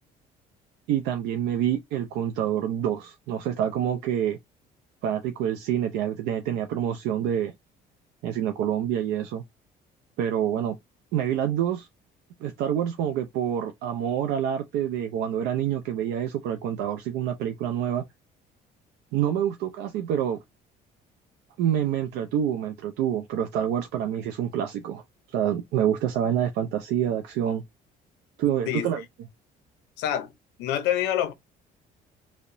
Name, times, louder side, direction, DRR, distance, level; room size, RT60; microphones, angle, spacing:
voice 1, 0.9-4.4 5.0-7.5 8.2-9.4 10.2-10.8 11.1-11.9 12.4-18.0 19.1-20.4 21.6-25.0 25.3-27.6 28.4-29.0, right 10 dB, 85° right, 0.4 m, -27 dB
voice 2, 30.0-30.3 30.6-31.3, left 11 dB, 90° left, 0.5 m, -26 dB
2.7 x 2.0 x 2.5 m
cardioid pair, 110°, 17 cm